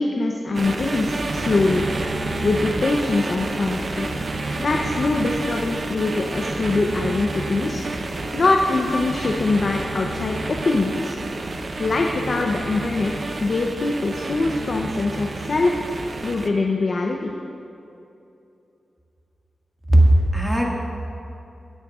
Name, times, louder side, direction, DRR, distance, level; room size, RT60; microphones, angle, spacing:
voice 1, 0.0-1.9 2.4-4.1 4.6-7.8 8.3-11.2 11.8-15.7 16.2-17.3, left 3 dB, 55° left, 1 dB, 0.7 m, -23 dB
sound 1, 0.5-16.5, right 2 dB, 50° right, 0.8 m, -29 dB
voice 2, 19.9-20.7, right 1 dB, 15° right, -2 dB, 1.9 m, -16 dB
18.5 x 8.9 x 2.5 m, 2.7 s
cardioid pair, 75°, 0 cm